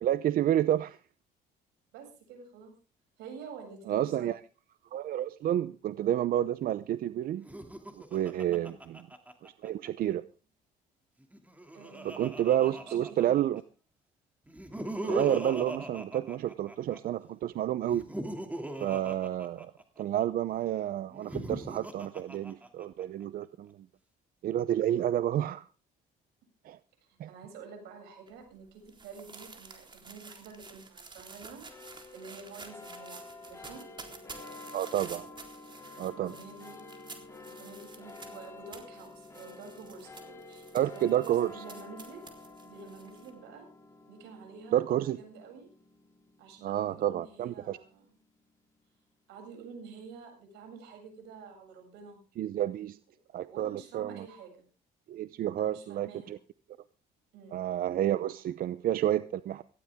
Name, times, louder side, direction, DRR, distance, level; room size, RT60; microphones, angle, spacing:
voice 1, 0.0-1.0 3.9-4.3 4.9-7.5 7.9-9.0 9.4-10.2 12.0-13.6 15.0-18.1 18.8-19.7 20.0-23.8 24.4-25.7 26.6-26.8 27.2-27.3 34.7-35.3 36.0-36.3 40.7-41.5 44.7-45.2 46.6-47.8 52.4-53.0 53.3-54.2 55.1-56.4 57.5-59.6, right 12 dB, 60° right, 0.7 m, -30 dB
voice 2, 1.9-2.7 3.2-4.3 8.5-8.8 11.7-12.3 12.6-13.4 27.1-33.9 36.1-36.8 37.5-42.3 42.6-43.7 44.1-45.7 46.4-48.1 49.3-52.2 53.4-54.7 55.6-56.4 57.3-57.7, right 5 dB, 85° right, 7.5 m, -49 dB
Laughter, 7.4-9.9 11.2-13.6 14.5-17.0 17.8-20.3 21.1-23.0, right 1 dB, 10° right, 2.7 m, -39 dB
sound 1, 28.3-43.3, right 4 dB, 30° right, 3.8 m, -50 dB
sound 2, 31.7-48.4, left 3 dB, 15° left, 3.0 m, -50 dB
18.0 x 15.5 x 3.6 m
cardioid pair, 110°, 17 cm